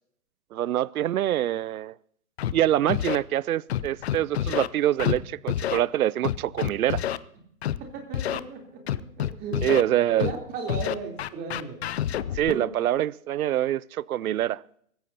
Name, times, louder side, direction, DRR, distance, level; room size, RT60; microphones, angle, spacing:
voice 1, 0.5-1.9 2.5-7.0 9.6-10.3 12.3-14.6, right 12 dB, 75° right, 0.6 m, -25 dB
Scratching (performance technique), 2.4-2.5 2.9-3.2 3.7-4.7 5.0-5.2 5.5-5.8 6.2-7.2 7.6-7.8 8.1-8.4 8.9-9.8 10.2-10.4 10.7-12.5, left 11 dB, 45° left, 0.7 m, -27 dB
voice 2, 7.8-8.8 9.2-9.8 10.2-11.8 12.4-12.6, right 4 dB, 20° right, 3.4 m, -35 dB
24.5 x 15.0 x 2.8 m
hypercardioid pair, 140°, 44 cm